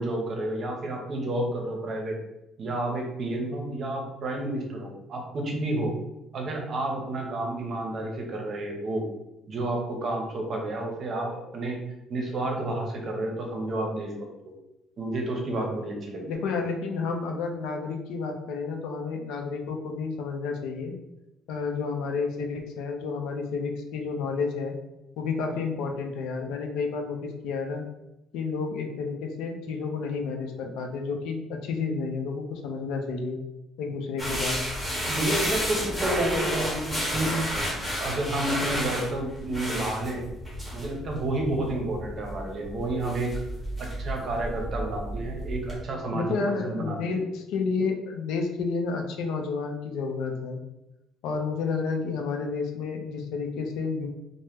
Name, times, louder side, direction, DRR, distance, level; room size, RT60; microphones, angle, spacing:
voice 1, 0.0-2.2 2.6-5.9 6.3-9.1 9.5-11.8 12.1-14.3 15.0-16.4 35.0-37.4 38.0-40.2 40.7-43.3 43.8-47.2, right 1 dB, 40° right, 2 dB, 0.7 m, -30 dB
voice 2, 16.3-20.9 21.5-24.7 25.2-27.8 28.3-33.4 33.8-34.6 46.1-50.6 51.2-54.1, left 4 dB, 85° left, 3 dB, 0.5 m, -30 dB
sound 1, 34.2-45.8, equal, ahead, 1.0 m, -32 dB
2.9 x 2.0 x 3.4 m, 0.90 s
cardioid pair, 150°, 0 cm